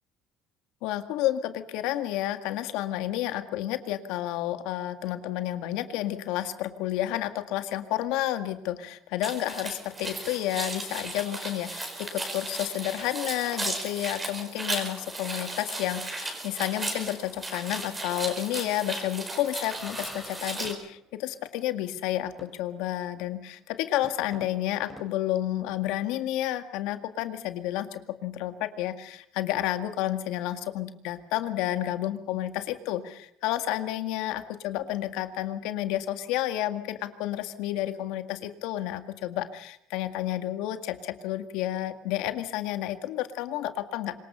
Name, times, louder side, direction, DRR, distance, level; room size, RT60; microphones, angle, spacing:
voice 1, 0.8-44.1, left 13 dB, 85° left, 9 dB, 1.9 m, -31 dB
sound 1, 9.2-20.7, right 2 dB, 15° right, 4.6 m, -36 dB
sound 2, 19.6-21.2 21.5-21.6 22.4-22.9 23.3-23.4 24.0-26.0, left 1 dB, ahead, 4.2 m, -48 dB
25.5 x 21.0 x 5.6 m, 0.70 s
cardioid pair, 135°, 0 cm